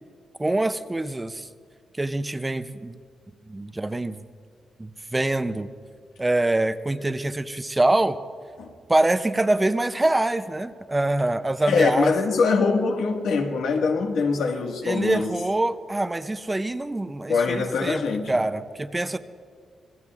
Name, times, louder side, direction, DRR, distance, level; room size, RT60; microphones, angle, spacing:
voice 1, 0.4-1.5 2.0-3.0 3.5-4.2 4.8-5.7 6.2-8.2 8.9-12.1 14.8-18.0 18.3-19.2, right 2 dB, 10° right, 0.4 m, -24 dB
voice 2, 11.7-15.4 17.3-18.3, left 4 dB, 85° left, 1.6 m, -23 dB
26.5 x 21.5 x 2.4 m
wide cardioid pair, 160°, 0 cm